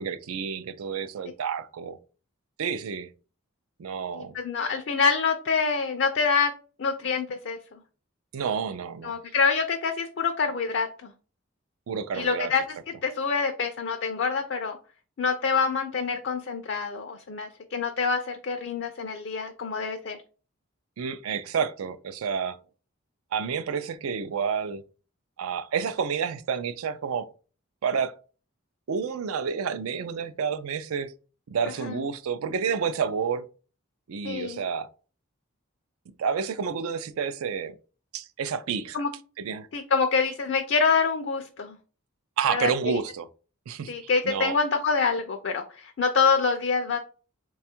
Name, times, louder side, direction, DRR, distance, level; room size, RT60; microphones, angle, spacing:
voice 1, 0.0-2.0 2.6-3.1 3.8-4.4 8.3-9.1 11.9-12.5 21.0-22.6 23.3-24.8 25.4-27.3 27.8-28.1 28.9-31.1 31.5-33.5 34.1-34.9 36.2-37.7 38.1-39.0 39.4-39.7 42.4-43.3 43.7-44.6, right 6 dB, 80° right, 0.4 m, -29 dB
voice 2, 4.1-6.5 6.8-7.6 9.0-11.1 12.1-12.6 13.0-14.8 15.2-20.2 31.8-31.9 34.2-34.6 38.9-39.1 39.7-41.8 42.5-43.0 43.9-47.0, left 5 dB, 55° left, 0.4 m, -26 dB
3.3 x 2.3 x 4.3 m
head